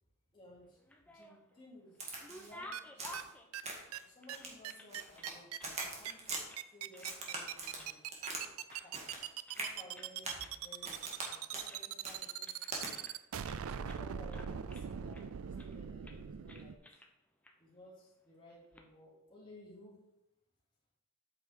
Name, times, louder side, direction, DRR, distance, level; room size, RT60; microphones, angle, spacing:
voice 1, 0.3-3.2 4.0-5.5 5.8-6.2 6.7-8.0 8.3-8.5 8.7-9.0 9.6-13.0 13.8-16.8 17.6-20.0, left 1 dB, 25° left, -6 dB, 3.0 m, -57 dB
sound 1, 0.7-1.6 1.9-4.9 5.1-6.2 6.5-6.7 6.9-7.5 7.8-8.4 8.7-9.7 9.9-10.1 10.4-10.6 10.8-11.4 11.7-13.6 13.9-14.0 14.3-15.2 15.6-15.8 16.0-16.2 16.5-17.1 17.4-17.5 18.5-18.8, left 1 dB, 5° left, 0.7 m, -54 dB
Crack, 2.0-2.5 3.0-3.3 3.6-4.0 4.3-5.3 5.6-6.4 7.0-8.4 8.7-9.3 9.5-9.7 10.2-10.4 10.8-11.3 11.5-11.7 12.0-12.2 12.7-12.9, right 2 dB, 30° right, 1.8 m, -42 dB
sound 2, 2.7-2.8 3.1-3.2 3.5-3.6 3.9-4.0 4.3-4.4 4.6-16.8, right 9 dB, 85° right, 0.4 m, -41 dB
8.2 x 5.5 x 4.5 m, 0.87 s
head